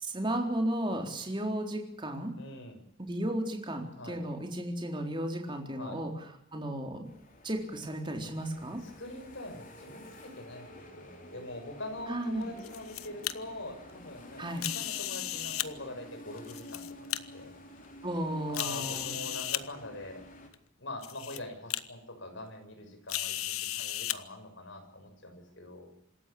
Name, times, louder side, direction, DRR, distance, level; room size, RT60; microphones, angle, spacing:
voice 1, 0.0-2.3 3.0-6.1 6.5-7.1 7.4-8.8 12.1-12.5 14.4-14.6 18.0-19.2, right 1 dB, 20° right, 3 dB, 4.0 m, -34 dB
voice 2, 2.4-2.8 4.0-4.2 5.8-6.0 8.8-14.5 14.7-17.5 18.5-20.2 20.8-25.9, left 1 dB, 60° left, 5 dB, 6.9 m, -44 dB
sound 1, 7.0-20.5, left 1 dB, 40° left, 4.7 m, -50 dB
sound 2, 12.4-13.3 14.6-15.7 16.4-17.2 17.8-17.9 18.5-19.6 20.5-20.6 21.0-21.4 21.7-21.8 23.1-24.2, left 13 dB, 85° left, 1.1 m, -35 dB
26.5 x 13.5 x 8.6 m, 0.75 s
head